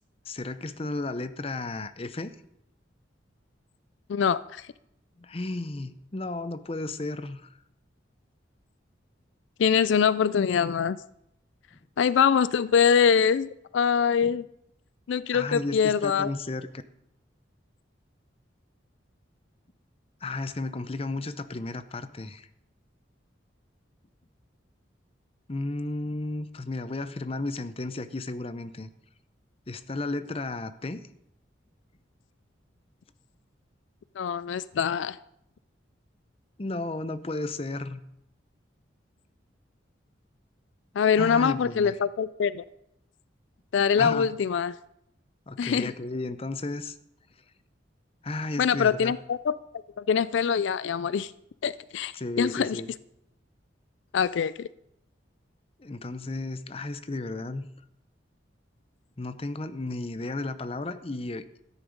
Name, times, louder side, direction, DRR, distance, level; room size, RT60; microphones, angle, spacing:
voice 1, 0.3-2.3 5.2-7.6 14.2-14.3 15.3-16.7 20.2-22.5 25.5-28.9 29.7-31.0 36.6-38.0 41.2-42.0 44.0-44.3 45.5-47.0 48.2-49.1 52.1-52.9 55.8-57.7 59.2-61.4, left 2 dB, 30° left, 12 dB, 0.6 m, -33 dB
voice 2, 4.1-4.6 9.6-11.0 12.0-14.5 15.1-16.3 34.2-35.2 41.0-42.6 43.7-44.8 45.6-45.9 48.6-49.6 50.0-51.3 51.6-52.1 52.4-52.8 54.1-54.7, left 7 dB, 80° left, 17 dB, 0.4 m, -24 dB
13.5 x 10.0 x 5.2 m, 0.80 s
head